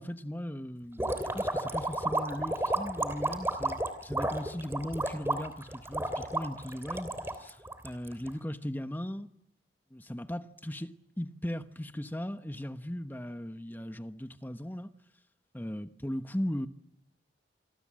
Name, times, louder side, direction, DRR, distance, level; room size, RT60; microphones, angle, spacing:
voice 1, 0.0-7.1 7.4-9.3 9.9-10.9 11.2-14.9 15.5-16.7, equal, 10° left, 1.1 m, -38 dB
sound 1, 1.0-8.3, right 1 dB, 15° right, 3.1 m, -32 dB
28.0 x 24.5 x 7.6 m
head